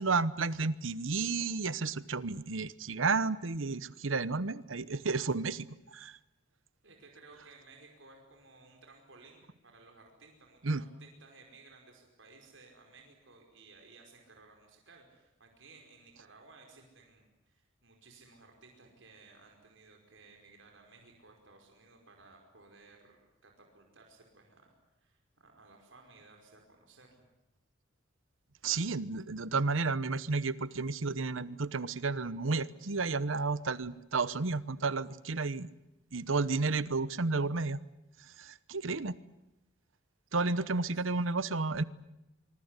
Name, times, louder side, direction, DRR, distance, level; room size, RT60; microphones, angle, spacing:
voice 1, 0.0-6.2 10.6-10.8 28.6-35.7 36.1-37.8 38.4-39.1 40.3-41.8, right 3 dB, 90° right, 17 dB, 1.0 m, -32 dB
voice 2, 6.8-24.7 25.0-27.2 40.3-41.1, right 3 dB, 75° right, 2 dB, 5.3 m, -58 dB
25.0 x 24.0 x 8.3 m, 0.91 s
head